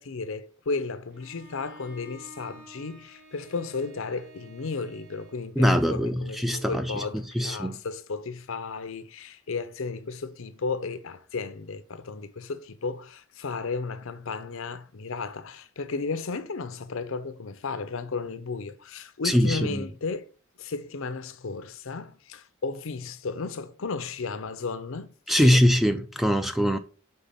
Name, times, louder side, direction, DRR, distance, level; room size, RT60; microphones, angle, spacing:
voice 1, 0.0-20.2 20.6-25.6, left 4 dB, 65° left, 0.6 m, -34 dB
Bowed string instrument, 1.1-5.5, right 1 dB, 55° right, 2.5 m, -50 dB
voice 2, 5.6-6.9 7.4-7.8 19.2-19.9 25.3-26.8, equal, ahead, 0.3 m, -22 dB
5.4 x 3.9 x 5.7 m
head